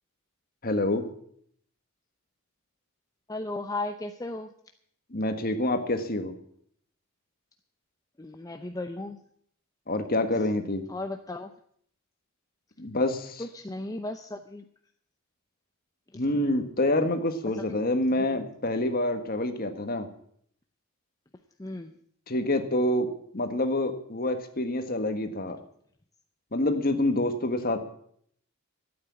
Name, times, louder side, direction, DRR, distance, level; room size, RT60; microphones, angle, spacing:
voice 1, 0.6-1.0 5.1-6.3 9.9-10.8 12.8-13.4 16.1-20.1 22.3-23.1 23.3-25.6 26.5-27.8, left 1 dB, 45° left, 7 dB, 1.5 m, -27 dB
voice 2, 3.3-4.5 8.2-9.2 10.9-11.5 13.4-14.7 16.1-16.2 17.5-17.8 18.1-18.4 21.6-21.9, left 2 dB, 15° left, 6 dB, 0.6 m, -36 dB
13.5 x 8.8 x 8.3 m, 0.65 s
head